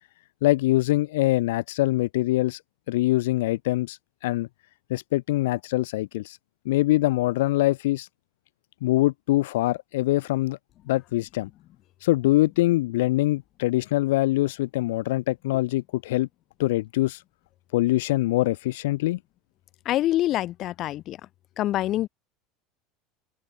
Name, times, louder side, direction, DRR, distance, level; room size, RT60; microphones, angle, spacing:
voice 1, 0.4-2.6 2.9-4.5 4.9-6.4 6.7-8.1 8.8-10.6 10.9-11.5 12.0-16.3 16.6-17.2 17.7-19.2, left 17 dB, 75° left, 0.5 m, -24 dB
voice 2, 19.8-21.2 21.6-22.1, left 14 dB, 50° left, 1.0 m, -25 dB
open air
hypercardioid pair, 80°, 0 cm